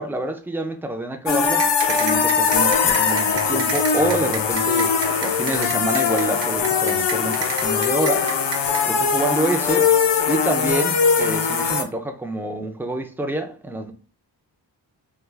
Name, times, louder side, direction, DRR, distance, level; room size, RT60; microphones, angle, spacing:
voice 1, 0.0-4.9 5.2-8.3 8.9-9.9 10.3-13.9, right 2 dB, 5° right, 0.3 m, -27 dB
sound 1, 1.3-11.8, left 6 dB, 70° left, 0.6 m, -21 dB
sound 2, 1.6-8.8, right 6 dB, 75° right, 0.7 m, -30 dB
3.4 x 2.3 x 3.3 m
wide cardioid pair, 120°, 43 cm